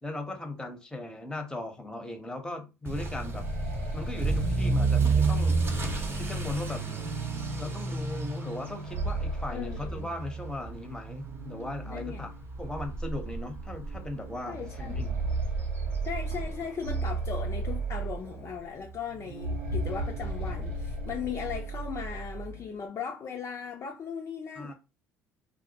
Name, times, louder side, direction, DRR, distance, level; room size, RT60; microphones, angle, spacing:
voice 1, 0.0-3.4 3.9-5.6 6.1-6.8 7.6-12.3 12.6-15.1 24.6-24.7, left 2 dB, 10° left, 0.7 m, -38 dB
Motor vehicle (road) / Accelerating revving vroom, 2.9-17.7 18.0-18.4 18.9-19.0 19.3-19.4 19.7-19.8 21.1-21.2, right 4 dB, 35° right, 0.7 m, -32 dB
sound 1, 3.1-6.8 8.6-10.8 11.1-11.2 12.1-12.2 12.7-12.8 14.5-18.6 19.3-22.7, right 2 dB, 90° right, 0.7 m, -35 dB
sound 2, 4.4-9.5 10.7-15.8 16.2-18.2 18.6-22.6, right 5 dB, 70° right, 0.4 m, -46 dB
voice 2, 9.5-10.1 11.9-12.2 14.5-15.0 16.0-24.7, left 7 dB, 40° left, 0.4 m, -38 dB
2.2 x 2.0 x 2.7 m
hypercardioid pair, 70°, 7 cm